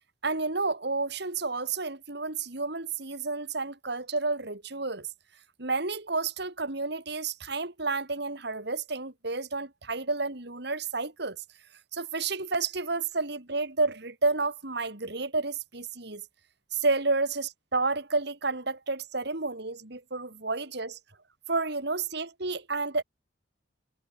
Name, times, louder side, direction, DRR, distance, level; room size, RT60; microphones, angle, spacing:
voice 1, 0.2-5.1 5.6-11.4 11.9-16.2 16.7-21.0 21.5-23.0, right 3 dB, 65° right, 3.5 m, -30 dB
head